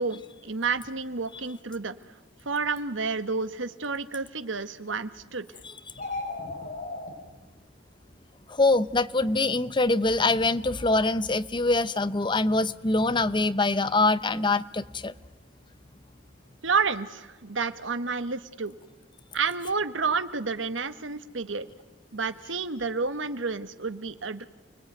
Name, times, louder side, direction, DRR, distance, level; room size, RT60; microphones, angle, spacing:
voice 1, 0.0-1.9 2.4-5.5 16.6-18.7 19.3-21.7 22.1-24.4, right 4 dB, 85° right, 12 dB, 1.4 m, -30 dB
sound 1, 5.9-7.1, left 3 dB, 45° left, 5.3 m, -34 dB
voice 2, 8.5-15.1, left 2 dB, 25° left, 15 dB, 0.9 m, -24 dB
29.5 x 21.0 x 9.3 m, 1.2 s
head